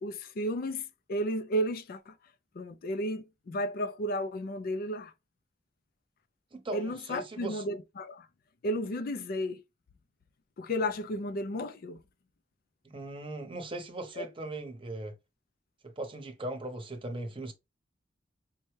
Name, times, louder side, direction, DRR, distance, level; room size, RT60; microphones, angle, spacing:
voice 1, 0.0-2.1 2.6-5.1 6.7-8.3 8.6-9.6 10.6-12.0 14.2-14.3, equal, 55° left, 0.4 m, -33 dB
voice 2, 6.5-7.6 12.8-15.1 15.8-17.5, right 2 dB, 30° right, 0.8 m, -39 dB
5.2 x 2.2 x 3.1 m
head